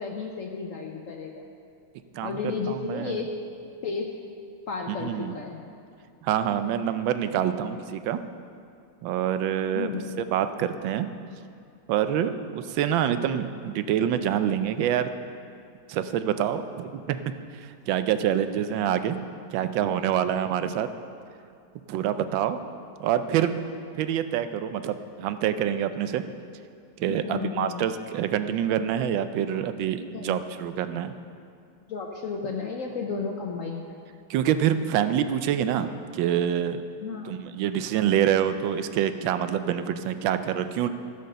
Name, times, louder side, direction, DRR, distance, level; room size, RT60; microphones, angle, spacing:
voice 1, 0.0-1.4 2.2-3.3 3.8-4.1 4.7-5.6 9.7-10.1 27.0-27.8 30.1-30.4 31.9-34.0 37.0-37.3, left 5 dB, 65° left, 2 dB, 0.8 m, -33 dB
voice 2, 2.7-3.2 5.0-5.4 6.2-8.2 9.0-11.1 11.9-15.1 15.9-17.3 17.9-19.2 19.5-20.9 21.9-22.6 23.0-23.6 23.9-26.2 27.0-31.1 34.3-36.8 37.2-40.9, right 10 dB, 85° right, 10 dB, 1.3 m, -26 dB
14.0 x 5.2 x 6.6 m, 2.4 s
omnidirectional pair, 2.1 m